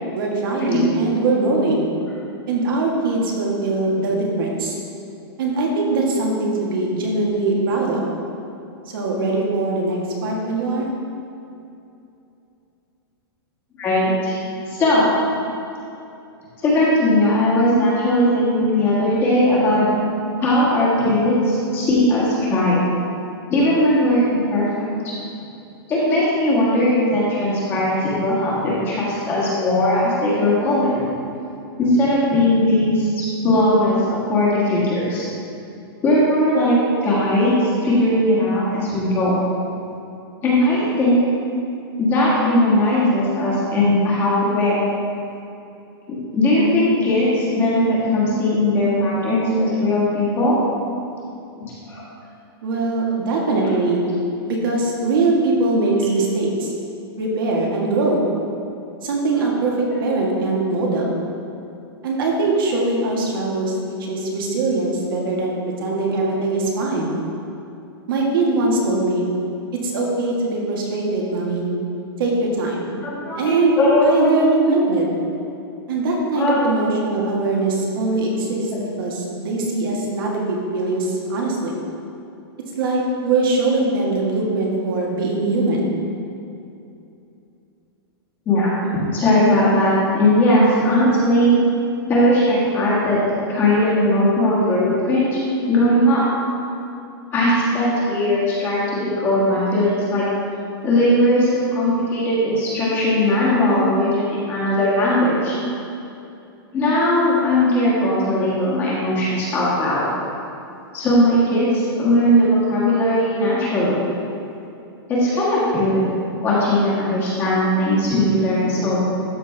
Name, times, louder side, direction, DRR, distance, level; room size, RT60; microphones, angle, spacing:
voice 1, 0.1-1.9 2.5-4.8 5.4-8.0 8.9-10.9 52.6-54.0 54.5-56.7 57.2-58.3 59.0-61.2 62.0-67.2 68.1-69.2 69.7-71.7 72.2-72.9 73.3-75.1 75.9-78.7 79.0-81.7 82.8-85.9, right 2 dB, 60° right, -2 dB, 1.6 m, -21 dB
voice 2, 13.8-14.3 14.7-15.1 16.6-19.8 20.4-22.8 23.5-24.7 25.0-25.1 25.9-31.0 31.8-35.3 36.0-36.8 37.0-39.4 40.4-41.2 42.0-44.8 46.3-50.6 51.6-52.0 73.0-74.3 76.3-76.7 78.7-78.9 88.4-91.6 92.1-93.2 93.5-95.4 95.7-96.2 97.3-100.2 100.8-105.5 106.7-110.0 110.9-114.0 115.1-116.2 116.4-119.0, left 1 dB, 15° left, -7 dB, 1.5 m, -18 dB
12.5 x 4.4 x 3.3 m, 2.7 s
supercardioid pair, 170°, 13 cm